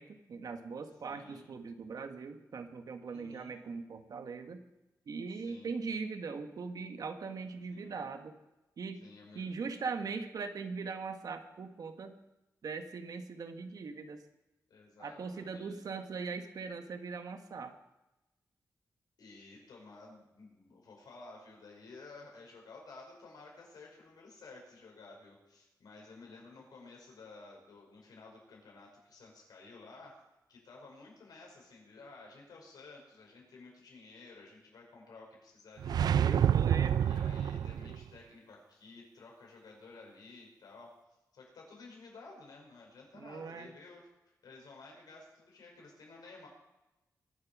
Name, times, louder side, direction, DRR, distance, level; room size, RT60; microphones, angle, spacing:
voice 1, 0.0-4.6 5.1-8.4 8.8-9.0 9.3-12.1 12.6-14.2 15.0-17.7 36.0-37.0 43.1-43.7, right 4 dB, 65° right, 7 dB, 1.4 m, -40 dB
voice 2, 1.1-1.5 3.0-3.6 5.3-5.7 7.7-8.0 9.0-9.5 14.7-15.9 19.2-30.2 30.5-36.5 37.0-41.0 41.3-46.5, left 3 dB, 85° left, -1 dB, 5.5 m, -53 dB
sound 1, 35.8-38.0, right 9 dB, 85° right, 0.4 m, -28 dB
23.0 x 7.7 x 6.1 m, 1.0 s
wide cardioid pair, 115°, 7 cm